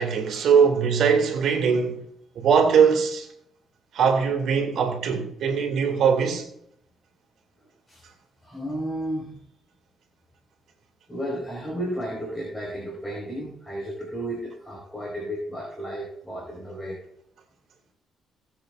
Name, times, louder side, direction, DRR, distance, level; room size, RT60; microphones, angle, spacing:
voice 1, 0.0-2.0 2.4-3.3 3.9-6.5, right 6 dB, 70° right, 2.1 m, -21 dB
voice 2, 8.4-9.4 11.1-17.0, right 1 dB, 15° left, 4.7 m, -33 dB
18.5 x 7.5 x 2.5 m
cardioid pair, 90°, 0 cm